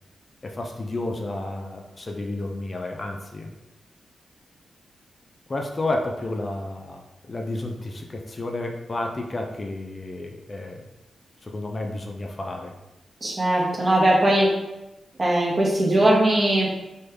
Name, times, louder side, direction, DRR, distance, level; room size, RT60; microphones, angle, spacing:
voice 1, 0.4-3.5 5.5-10.9 11.4-12.8, left 2 dB, 35° left, 2 dB, 0.4 m, -31 dB
voice 2, 13.2-14.5 15.2-16.7, right 1 dB, 40° right, -4 dB, 0.9 m, -20 dB
3.3 x 2.3 x 3.2 m, 0.98 s
cardioid pair, 90°, 0 cm